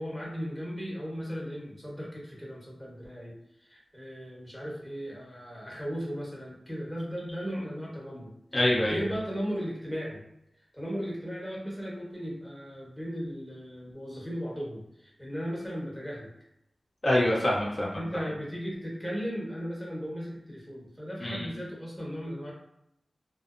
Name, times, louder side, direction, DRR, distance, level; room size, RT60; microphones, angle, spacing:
voice 1, 0.0-8.3 8.8-10.2 10.7-16.3 17.9-22.5, equal, ahead, -5 dB, 1.2 m, -36 dB
voice 2, 8.5-9.0 17.0-18.0 21.2-21.5, left 1 dB, 40° left, -5 dB, 0.7 m, -25 dB
2.7 x 2.0 x 2.5 m, 0.80 s
cardioid pair, 45°, 0 cm